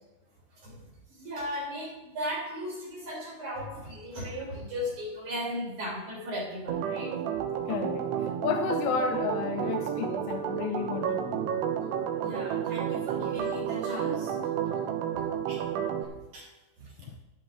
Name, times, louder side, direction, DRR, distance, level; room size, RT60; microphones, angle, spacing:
voice 1, 0.5-7.1 12.2-14.3 15.5-15.6 16.3-16.5 16.8-16.9, equal, 45° right, -3 dB, 3.8 m, -37 dB
Organ, 6.7-16.0, right 9 dB, 75° right, 2.8 m, -31 dB
voice 2, 7.7-8.1 8.4-11.3 17.1-17.2, left 7 dB, 80° left, 5 dB, 2.7 m, -31 dB
13.0 x 11.0 x 3.8 m, 1.0 s
omnidirectional pair, 5.4 m